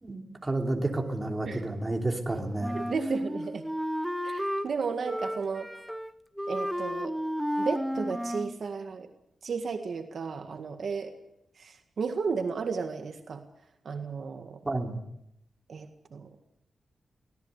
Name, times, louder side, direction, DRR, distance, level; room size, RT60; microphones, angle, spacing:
voice 1, 0.0-2.8 14.6-15.0, right 2 dB, 15° right, 1 dB, 2.9 m, -30 dB
Wind instrument woodwind instrument, 2.6-4.7 5.1-6.1 6.4-8.6, equal, ahead, 0.8 m, -32 dB
voice 2, 2.7-3.6 4.2-5.7 6.5-7.2 7.6-9.1 9.4-11.1 11.6-13.4 13.8-14.6 15.7-16.3, right 5 dB, 55° right, 5 dB, 1.9 m, -34 dB
25.0 x 18.0 x 8.3 m, 0.82 s
wide cardioid pair, 175°, 0 cm